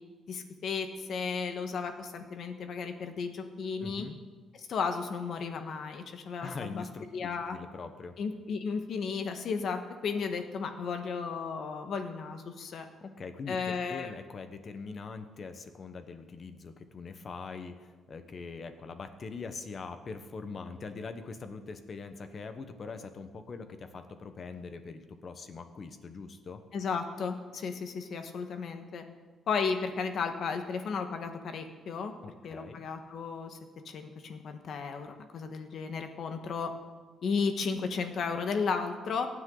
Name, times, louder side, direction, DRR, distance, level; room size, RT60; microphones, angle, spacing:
voice 1, 0.3-4.1 4.7-6.8 7.1-7.6 8.2-12.8 13.5-14.1 26.7-29.0 29.5-32.1 32.4-33.6 33.8-36.7 37.2-39.3, left 5 dB, 50° left, 6 dB, 1.4 m, -34 dB
voice 2, 3.8-4.2 6.4-8.1 13.0-26.6 32.2-32.8, left 4 dB, 35° left, 9 dB, 1.1 m, -42 dB
23.5 x 9.5 x 4.0 m, 1.4 s
cardioid pair, 145°, 0 cm